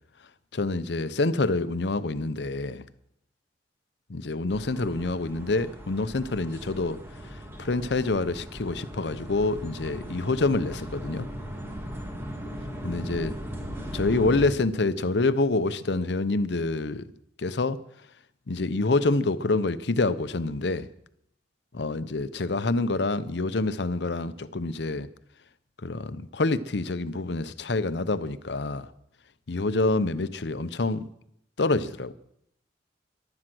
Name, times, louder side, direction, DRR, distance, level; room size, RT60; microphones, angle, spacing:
voice 1, 0.5-2.9 4.1-7.0 7.3-11.3 12.8-13.3 13.9-17.1 17.4-17.8 18.5-20.9 21.7-25.1 25.8-28.9 29.5-31.1 31.6-32.1, left 3 dB, 70° left, 0.7 m, -27 dB
sound 1, 4.5-14.5, equal, 15° right, 2.0 m, -38 dB
15.5 x 11.5 x 6.2 m
head